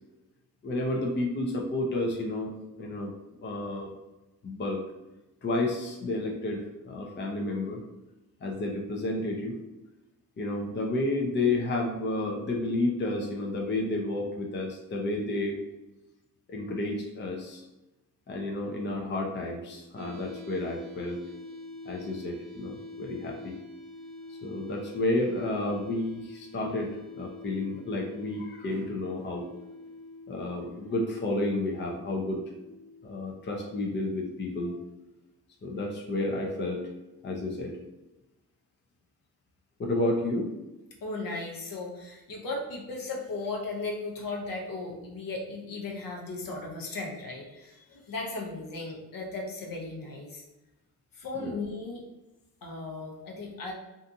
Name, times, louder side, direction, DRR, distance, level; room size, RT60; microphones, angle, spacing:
voice 1, 0.6-2.5 2.8-3.1 3.4-3.9 4.4-4.8 5.4-7.8 8.4-9.5 10.4-15.6 16.5-17.6 18.3-21.2 21.9-23.6 24.3-29.5 30.3-32.4 33.0-34.8 35.6-36.8 37.2-37.8 39.8-40.5 51.4-51.5, left 2 dB, 30° left, 0 dB, 0.6 m, -31 dB
sound 1, 20.0-33.9, left 2 dB, 55° right, 0.6 m, -46 dB
voice 2, 41.0-50.4 51.1-52.0 52.6-53.7, left 3 dB, 60° left, -1 dB, 0.8 m, -36 dB
2.6 x 2.4 x 2.6 m, 1.0 s
supercardioid pair, 50°, 37 cm